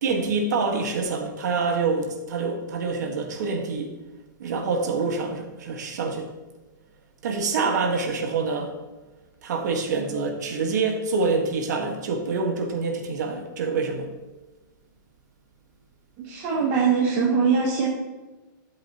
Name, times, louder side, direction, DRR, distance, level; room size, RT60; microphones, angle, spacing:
voice 1, 0.0-3.9 4.4-6.3 7.2-8.8 9.4-14.1, right 4 dB, 55° right, 3 dB, 1.6 m, -26 dB
voice 2, 16.2-17.9, right 5 dB, 25° right, -4 dB, 1.2 m, -22 dB
12.0 x 7.5 x 3.0 m, 1.2 s
hypercardioid pair, 175°, 11 cm